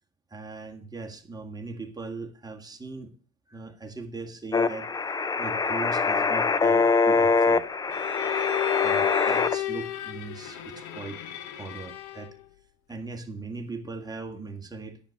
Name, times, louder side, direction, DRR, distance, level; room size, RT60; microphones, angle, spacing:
voice 1, 0.3-3.2 3.5-4.9 5.4-7.6 8.8-11.2 11.6-12.4 12.9-15.0, right 3 dB, 10° right, 4 dB, 1.7 m, -39 dB
sound 1, 4.5-9.5, left 4 dB, 10° left, 0.5 m, -24 dB
Bowed string instrument, 7.9-12.4, left 13 dB, 45° left, 1.2 m, -33 dB
10.5 x 6.7 x 6.0 m, 0.41 s
figure-of-eight pair, 70°, 40 cm